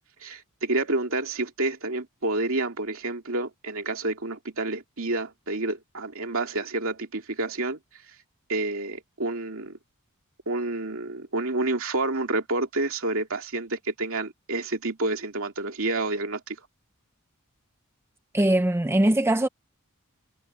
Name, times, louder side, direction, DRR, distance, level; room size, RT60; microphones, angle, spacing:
voice 1, 0.2-7.8 8.5-9.8 10.5-16.6, right 2 dB, 65° right, 2.7 m, -29 dB
voice 2, 18.3-19.5, right 1 dB, 10° right, 0.5 m, -21 dB
head